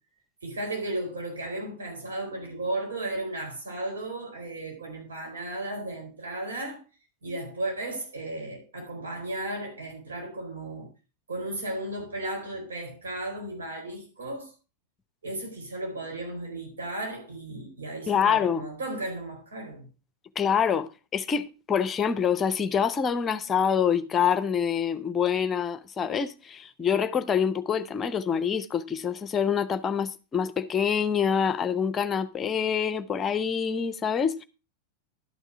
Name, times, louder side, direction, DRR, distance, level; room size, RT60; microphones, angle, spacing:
voice 1, 0.4-6.8 7.2-10.9 11.3-14.5 15.2-19.9, right 2 dB, 70° right, 4.3 m, -35 dB
voice 2, 18.1-18.6 20.3-34.4, left 7 dB, 25° left, 0.8 m, -26 dB
12.0 x 6.5 x 4.8 m
figure-of-eight pair, 90°, 0 cm